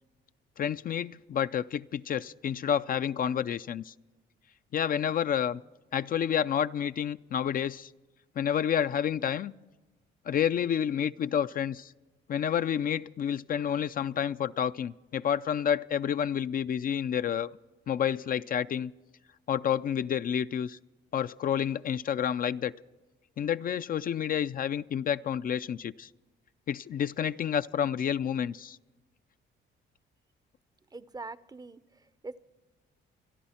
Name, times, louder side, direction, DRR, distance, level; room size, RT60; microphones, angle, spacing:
voice 1, 0.6-3.9 4.7-5.6 5.9-7.9 8.4-9.5 10.3-11.9 12.3-17.5 17.9-18.9 19.5-20.8 21.1-22.7 23.4-26.1 26.7-28.8, left 9 dB, 45° left, 13 dB, 0.4 m, -29 dB
voice 2, 30.9-32.4, right 3 dB, 20° right, 16 dB, 0.5 m, -43 dB
27.0 x 11.0 x 4.3 m, 1.2 s
cardioid pair, 90°, 20 cm